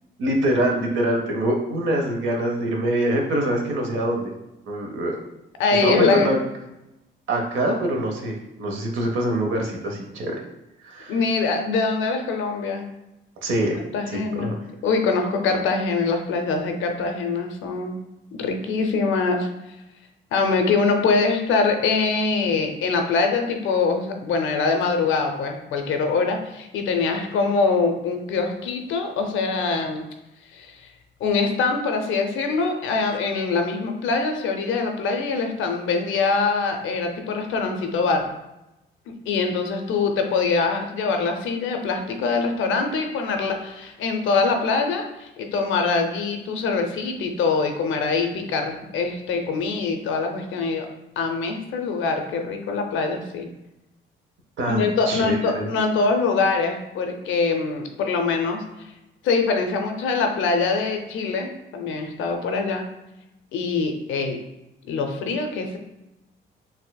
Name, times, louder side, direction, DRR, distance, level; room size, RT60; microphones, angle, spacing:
voice 1, 0.2-4.3 4.7-5.2 5.8-6.4 7.3-10.3 10.8-11.1 13.4-13.8 14.1-14.6 54.6-55.7, right 1 dB, 75° right, 2 dB, 0.8 m, -24 dB
voice 2, 5.6-6.4 11.1-12.8 13.9-14.5 14.8-18.0 18.3-19.5 20.3-30.1 30.5-30.9 31.2-38.3 39.1-50.9 51.2-53.5 54.7-58.9 59.2-62.9 63.5-64.4 64.9-65.8, left 4 dB, 85° left, 4 dB, 0.5 m, -23 dB
4.2 x 2.5 x 2.2 m, 0.93 s
cardioid pair, 90°, 20 cm